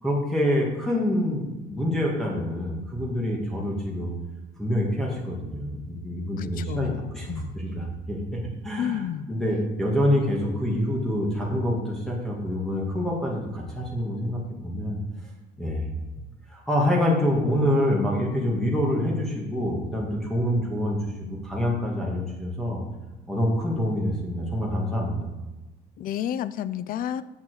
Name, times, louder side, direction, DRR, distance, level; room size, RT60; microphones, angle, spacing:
voice 1, 0.0-4.1 4.6-7.3 7.5-9.0 9.3-15.0 15.6-15.9 16.5-22.8 23.3-25.3, equal, ahead, -3 dB, 2.0 m, -26 dB
voice 2, 6.4-7.5 8.8-9.3 26.0-27.2, left 10 dB, 55° left, 15 dB, 0.5 m, -31 dB
7.3 x 5.7 x 6.3 m, 1.1 s
cardioid pair, 110°, 17 cm